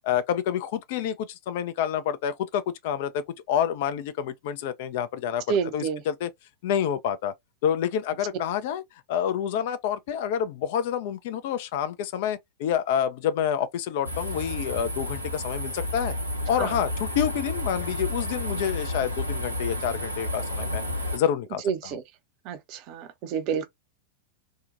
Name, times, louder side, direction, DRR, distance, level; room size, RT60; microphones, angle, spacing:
voice 1, 0.0-5.4 5.7-6.3 6.6-7.3 7.6-8.8 9.1-16.1 16.5-20.8 21.1-22.0, left 9 dB, 50° left, 0.3 m, -28 dB
voice 2, 5.5-6.0 16.6-16.7 21.6-22.0 22.5-23.7, right 7 dB, 40° right, 0.5 m, -29 dB
sound 1, 14.0-21.2, left 1 dB, 90° right, 0.8 m, -31 dB
2.7 x 2.1 x 2.4 m
figure-of-eight pair, 90°, 0 cm